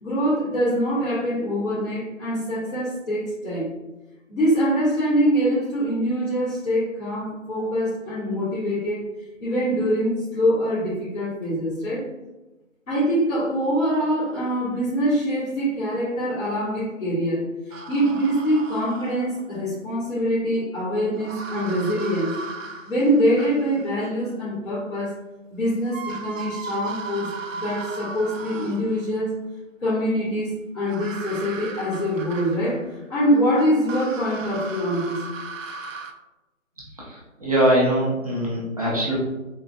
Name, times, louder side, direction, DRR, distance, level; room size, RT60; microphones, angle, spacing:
voice 1, 0.0-3.7 4.3-9.0 9.4-12.0 12.9-22.3 22.9-25.2 25.5-27.3 27.6-29.3 29.8-35.2, equal, 70° left, -10 dB, 1.5 m, -24 dB
sound 1, 17.7-19.6 21.1-24.1 25.5-25.6 25.8-29.1 30.8-32.9 33.5-36.1, right 4 dB, 75° right, 0.5 m, -36 dB
voice 2, 36.9-39.1, right 1 dB, 30° right, -5 dB, 0.7 m, -22 dB
3.7 x 2.3 x 2.2 m, 1.1 s
figure-of-eight pair, 155°, 40 cm